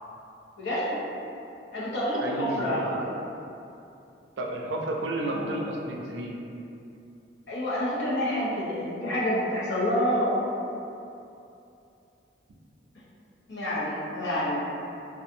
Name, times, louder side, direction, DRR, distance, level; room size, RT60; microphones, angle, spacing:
voice 1, 0.6-1.0 1.7-3.0 5.2-5.6 7.5-10.6 13.5-14.6, equal, 90° left, -8 dB, 0.7 m, -28 dB
voice 2, 2.2-3.0 4.4-6.3, right 1 dB, 80° right, -1 dB, 0.4 m, -31 dB
2.6 x 2.3 x 2.6 m, 2.7 s
head